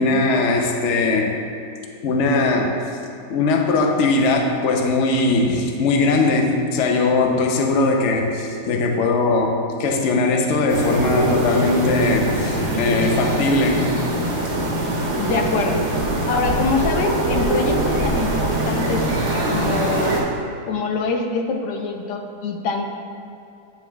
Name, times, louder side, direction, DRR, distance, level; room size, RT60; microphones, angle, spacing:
voice 1, 0.0-1.3 2.0-2.7 3.3-13.9, left 3 dB, 60° left, 2 dB, 0.8 m, -20 dB
sound 1, 10.7-20.2, right 1 dB, 75° right, 1.8 m, -22 dB
voice 2, 15.2-15.8 16.3-19.1 19.5-20.2 20.7-22.8, left 4 dB, 85° left, 4 dB, 1.3 m, -24 dB
9.0 x 6.9 x 2.3 m, 2.7 s
omnidirectional pair, 1.8 m